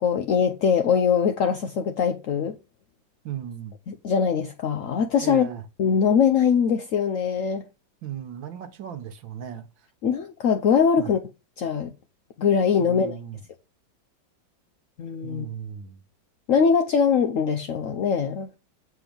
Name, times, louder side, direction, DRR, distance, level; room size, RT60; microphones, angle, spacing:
voice 1, 0.0-2.6 3.9-5.5 5.8-7.6 10.0-11.2 11.6-11.9 12.4-13.1 15.0-15.5 16.5-18.5, left 6 dB, 70° left, 0.7 m, -22 dB
voice 2, 3.2-3.7 5.2-5.6 8.0-9.7 11.0-11.1 12.8-13.4 15.2-16.0, right 9 dB, 75° right, 1.8 m, -36 dB
7.6 x 4.4 x 5.1 m
omnidirectional pair, 2.1 m